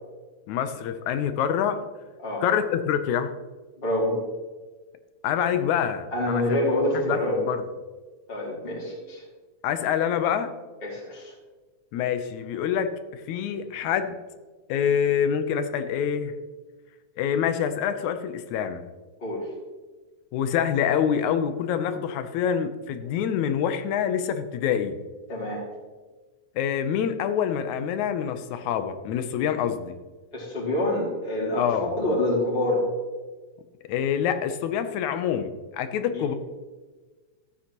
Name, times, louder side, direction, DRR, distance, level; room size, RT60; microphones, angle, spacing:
voice 1, 0.5-1.8 2.4-3.3 5.2-6.6 6.9-7.6 9.6-10.5 11.9-14.1 14.7-16.3 17.2-18.8 20.3-25.0 26.6-30.0 31.6-32.0 33.9-36.3, left 8 dB, 80° left, 9 dB, 2.1 m, -26 dB
voice 2, 3.8-4.2 6.1-7.4 8.3-9.2 10.8-11.3 19.2-19.5 25.3-25.6 30.3-31.7 32.0-32.8 36.1-36.3, left 1 dB, 20° left, -5 dB, 2.6 m, -26 dB
14.5 x 8.6 x 3.0 m, 1.3 s
omnidirectional pair, 3.3 m